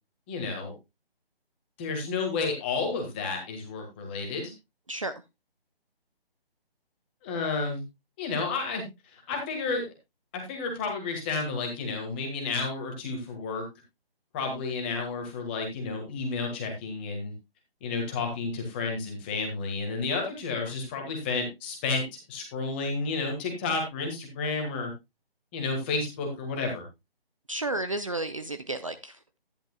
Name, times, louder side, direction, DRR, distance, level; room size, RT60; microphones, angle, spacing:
voice 1, 0.3-0.7 1.8-4.5 7.2-7.8 8.2-8.8 9.1-9.8 10.3-13.6 14.3-17.3 17.8-24.9 25.5-26.8, left 4 dB, 10° left, 1.6 m, -31 dB
voice 2, 27.5-29.2, right 2 dB, 35° right, 0.6 m, -32 dB
11.5 x 10.5 x 2.3 m
hypercardioid pair, 170°, 30 cm